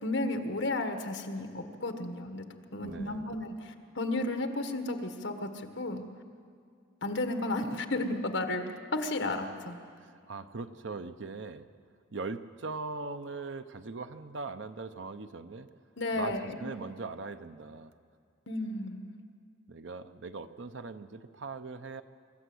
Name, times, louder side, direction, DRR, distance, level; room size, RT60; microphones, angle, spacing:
voice 1, 0.0-2.4 2.7-6.0 7.0-9.8 16.0-16.7 18.5-19.0, left 2 dB, 65° left, 6 dB, 1.5 m, -33 dB
voice 2, 2.8-3.5 10.0-11.7 12.1-15.7 16.1-17.9 19.7-22.0, right 3 dB, 65° right, 10 dB, 0.8 m, -40 dB
25.0 x 13.5 x 7.9 m, 2.3 s
head